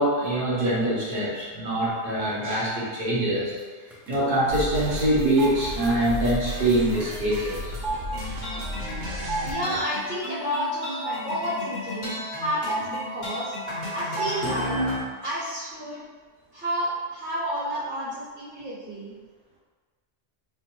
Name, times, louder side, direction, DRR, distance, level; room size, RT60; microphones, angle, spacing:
voice 1, 0.0-3.5 4.1-7.7, right 1 dB, 45° right, -8 dB, 1.2 m, -24 dB
sound 1, 2.2-2.3 3.6-3.7 3.9-4.3 5.4-5.5 7.2-7.3 7.8-9.4 9.7-9.9 11.0-11.2 12.7-13.0 14.2-14.3 14.6-14.8, right 3 dB, ahead, 0.5 m, -32 dB
sound 2, 4.5-9.5, equal, 85° right, 1.1 m, -33 dB
sound 3, 8.1-15.0, left 1 dB, 40° left, 1.1 m, -33 dB
voice 2, 9.4-13.5 13.9-14.8 15.2-16.0 16.5-19.1, equal, 70° right, -16 dB, 1.8 m, -30 dB
3.6 x 2.1 x 4.4 m, 1.5 s
omnidirectional pair, 1.2 m